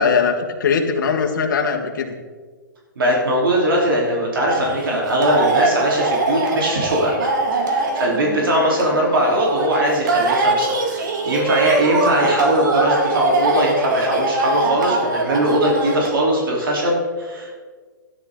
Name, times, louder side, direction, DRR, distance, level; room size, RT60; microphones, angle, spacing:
voice 1, 0.0-2.1, left 5 dB, 60° left, 2 dB, 1.5 m, -20 dB
voice 2, 3.0-17.5, equal, 80° right, -3 dB, 3.5 m, -20 dB
Carnatic varnam by Sreevidya in Sahana raaga, 4.5-16.1, right 3 dB, 60° right, 1.9 m, -22 dB
13.0 x 10.0 x 3.8 m, 1.5 s
hypercardioid pair, 160°, 11 cm